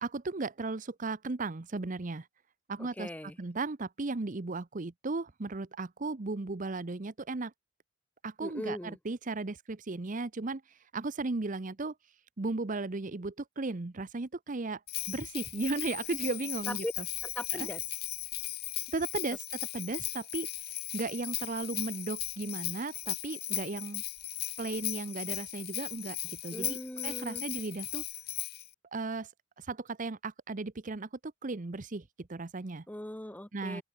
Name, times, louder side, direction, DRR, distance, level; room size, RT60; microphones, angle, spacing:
voice 1, 0.0-2.3 2.7-3.1 3.4-7.5 8.2-10.6 10.9-11.9 12.4-14.8 15.1-16.8 17.5-17.7 18.9-19.4 19.7-20.5 20.9-24.0 24.6-26.8 27.0-28.0 28.9-29.3 29.6-32.8 33.5-33.8, right 3 dB, 40° right, 0.7 m, -35 dB
voice 2, 2.8-3.4 8.4-9.0 16.7-16.9 17.2-17.8 26.5-27.4 32.9-33.8, left 1 dB, 10° left, 1.0 m, -39 dB
Bell, 14.9-28.7, left 17 dB, 50° left, 1.2 m, -37 dB
open air
head